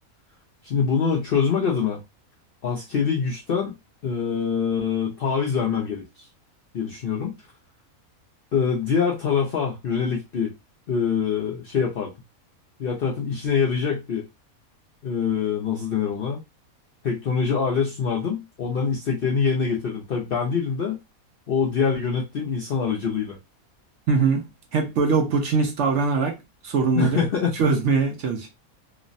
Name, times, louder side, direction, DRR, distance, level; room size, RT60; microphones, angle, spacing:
voice 1, 0.6-2.0 2.6-3.7 4.0-6.3 6.7-7.3 8.5-10.5 10.9-12.1 12.8-14.2 15.0-16.4 17.0-21.0 21.5-23.4 27.0-27.6, left 6 dB, 65° left, 0.6 m, -24 dB
voice 2, 24.1-24.4 24.7-26.3 26.6-27.3 27.5-28.5, right 4 dB, 65° right, 0.8 m, -22 dB
3.1 x 2.0 x 2.5 m
omnidirectional pair, 1.5 m